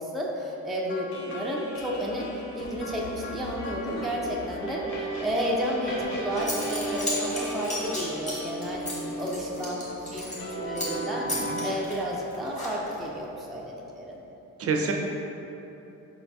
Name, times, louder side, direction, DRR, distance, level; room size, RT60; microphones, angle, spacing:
voice 1, 0.0-14.2, equal, ahead, -3 dB, 0.4 m, -32 dB
sound 1, 0.9-5.9, left 1 dB, 60° left, 0.7 m, -40 dB
sound 2, 3.6-11.7, right 2 dB, 45° left, 1.3 m, -35 dB
Zipper (clothing) / Coin (dropping), 6.0-6.1 6.4-10.5 10.8-11.0 11.3-13.1, left 1 dB, 25° left, 1.3 m, -34 dB
voice 2, 11.3-11.6 14.6-14.9, right 4 dB, 50° right, 1 dB, 0.5 m, -28 dB
4.8 x 4.0 x 2.3 m, 3.0 s
cardioid pair, 90°, 30 cm